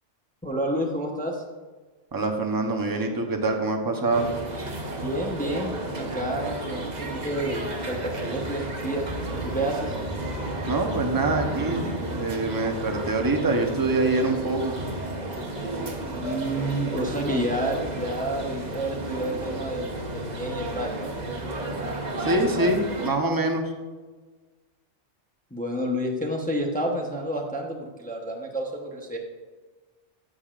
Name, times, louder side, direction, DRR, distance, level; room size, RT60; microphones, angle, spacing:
voice 1, 0.4-1.4 4.9-10.0 16.0-21.1 25.5-29.2, right 1 dB, 10° left, 0 dB, 0.7 m, -30 dB
voice 2, 2.1-4.3 10.7-11.9 12.1-14.8 22.2-23.7, right 2 dB, 20° right, 3 dB, 0.8 m, -25 dB
sound 1, 4.1-23.1, right 1 dB, 40° right, 1.0 m, -32 dB
13.0 x 6.6 x 2.5 m, 1.3 s
omnidirectional pair, 1.2 m